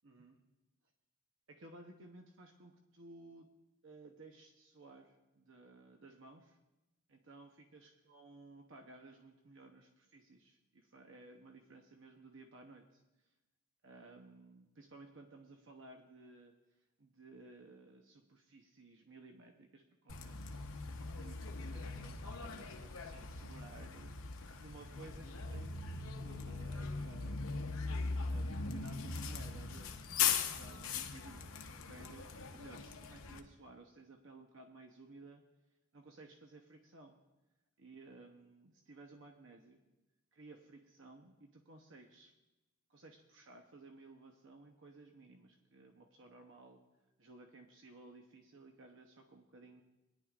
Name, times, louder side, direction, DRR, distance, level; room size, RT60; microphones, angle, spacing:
voice 1, 0.0-0.4 1.5-3.5 3.8-6.6 7.1-13.3 13.8-16.5 17.0-20.6 21.2-27.7 28.2-35.4 35.9-37.2 37.8-39.8 40.3-42.3 42.9-46.8 47.2-49.8, right 2 dB, 60° right, 3 dB, 0.8 m, -57 dB
Bus, 20.1-33.4, left 5 dB, 70° left, 0.9 m, -40 dB
20.5 x 10.5 x 2.4 m, 0.99 s
head